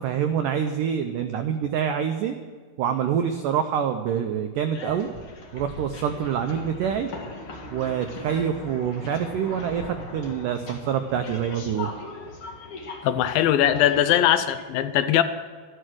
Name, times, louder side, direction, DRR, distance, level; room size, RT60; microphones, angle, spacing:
voice 1, 0.0-2.3 2.8-5.1 5.5-7.1 7.7-11.9, right 8 dB, 90° right, 7 dB, 1.8 m, -26 dB
sound 1, 4.7-14.6, left 2 dB, 50° left, 1.7 m, -39 dB
voice 2, 13.0-15.2, left 11 dB, 75° left, 11 dB, 2.2 m, -20 dB
13.0 x 12.5 x 6.2 m, 1.5 s
omnidirectional pair, 4.7 m